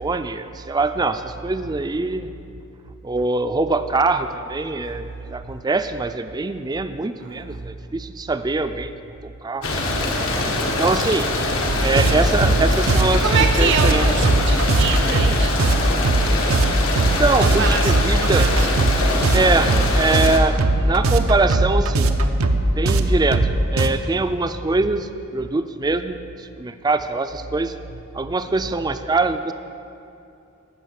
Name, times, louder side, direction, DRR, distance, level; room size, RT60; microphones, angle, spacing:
voice 1, 0.0-2.3 3.0-8.9 9.2-9.7 10.6-11.3 11.8-14.1 17.2-18.5 19.3-22.1 22.7-27.7 28.1-29.5, right 3 dB, 20° right, 10 dB, 0.4 m, -23 dB
voice 2, 7.2-7.6 10.2-10.4 12.8-15.5 17.2-19.0, right 5 dB, 60° right, 5 dB, 0.7 m, -26 dB
sound 1, 9.6-20.4, left 2 dB, 75° left, 1.3 m, -24 dB
sound 2, 11.7-23.9, right 1 dB, 90° right, 0.7 m, -20 dB
15.0 x 5.9 x 6.4 m, 2.7 s
head